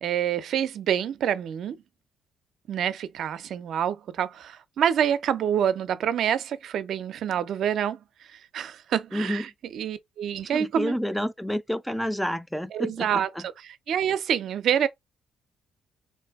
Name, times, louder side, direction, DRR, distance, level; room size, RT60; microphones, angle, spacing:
voice 1, 0.0-1.8 2.7-8.0 8.3-11.0 12.7-13.3 13.9-14.9, right 9 dB, 70° right, 0.4 m, -27 dB
voice 2, 9.1-9.4 10.5-13.1, equal, ahead, 0.4 m, -29 dB
2.7 x 2.5 x 3.4 m
cardioid pair, 90°, 0 cm